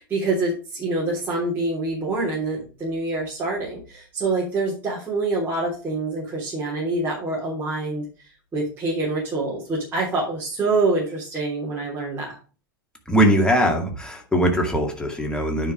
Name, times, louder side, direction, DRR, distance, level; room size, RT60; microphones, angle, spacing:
voice 1, 0.0-8.0 8.5-12.3, right 2 dB, 15° right, -6 dB, 3.3 m, -26 dB
voice 2, 13.1-15.7, equal, 5° left, 2 dB, 2.1 m, -21 dB
9.5 x 4.9 x 4.9 m, 0.35 s
figure-of-eight pair, 90°, 12 cm